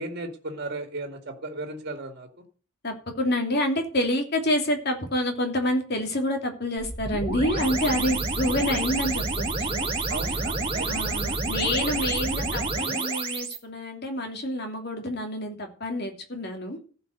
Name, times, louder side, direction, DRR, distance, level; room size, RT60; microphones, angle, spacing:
voice 1, 0.0-2.3 10.1-11.0 11.3-11.5, right 2 dB, 50° right, 5 dB, 2.0 m, -35 dB
voice 2, 2.8-9.9 10.9-16.8, left 1 dB, 50° left, 4 dB, 2.9 m, -28 dB
sound 1, 6.8-13.6, right 3 dB, 25° right, 2.2 m, -28 dB
15.0 x 5.7 x 6.7 m, 0.41 s
head